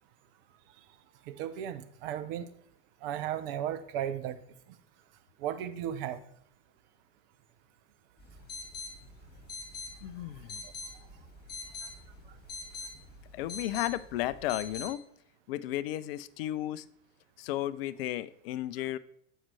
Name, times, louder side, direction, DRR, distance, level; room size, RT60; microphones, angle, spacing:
voice 1, 1.3-2.5 3.0-4.4 5.4-6.2, right 10 dB, 50° right, 12 dB, 0.7 m, -35 dB
sound 1, 8.2-14.9, left 3 dB, 25° left, 1.9 m, -44 dB
voice 2, 10.0-10.7 13.3-15.0 15.5-16.9 17.4-19.0, left 14 dB, 55° left, 16 dB, 0.4 m, -34 dB
7.2 x 5.4 x 3.2 m, 0.69 s
hypercardioid pair, 90°, 37 cm